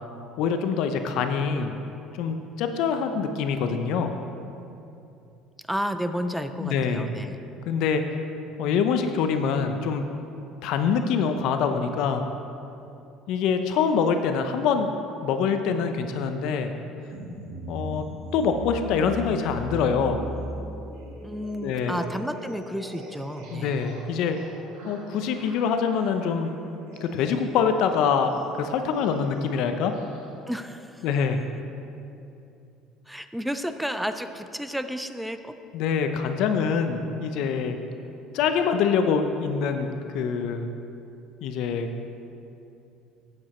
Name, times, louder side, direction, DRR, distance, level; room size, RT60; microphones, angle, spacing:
voice 1, 0.4-1.7 2.2-4.1 6.6-7.1 7.7-8.0 8.6-10.0 10.6-12.2 13.3-14.9 15.2-16.7 17.7-18.0 18.3-20.2 21.6-22.0 23.5-24.4 24.8-26.6 27.0-29.9 31.0-31.4 35.7-37.8 38.3-40.7 41.4-41.9, left 6 dB, 65° left, 7 dB, 0.6 m, -25 dB
voice 2, 5.7-7.4 21.2-23.8 30.5-31.1 33.1-35.5, equal, ahead, 9 dB, 0.4 m, -31 dB
sound 1, 17.0-30.3, right 1 dB, 80° right, 2.1 m, -40 dB
7.8 x 7.7 x 4.2 m, 2.8 s
cardioid pair, 125°, 0 cm